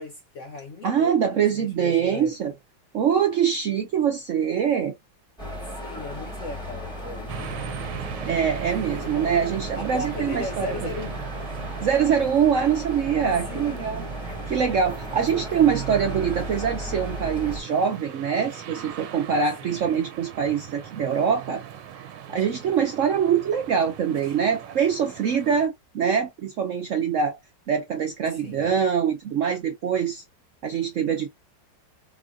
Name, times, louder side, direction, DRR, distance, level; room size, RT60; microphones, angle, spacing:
voice 1, 0.0-2.4 5.8-8.1 9.8-11.3 13.5-13.8 19.6-20.0 22.3-22.4 28.3-28.7, left 3 dB, 60° left, 0.8 m, -37 dB
voice 2, 0.8-2.5 2.9-4.9 8.2-10.8 11.8-21.6 22.3-27.4 27.7-30.2 30.6-31.3, right 7 dB, 65° right, 0.8 m, -24 dB
sound 1, 5.4-17.6, equal, 5° left, 1.2 m, -35 dB
sound 2, 7.3-25.7, right 10 dB, 85° right, 1.3 m, -39 dB
4.4 x 2.5 x 2.2 m
omnidirectional pair, 2.0 m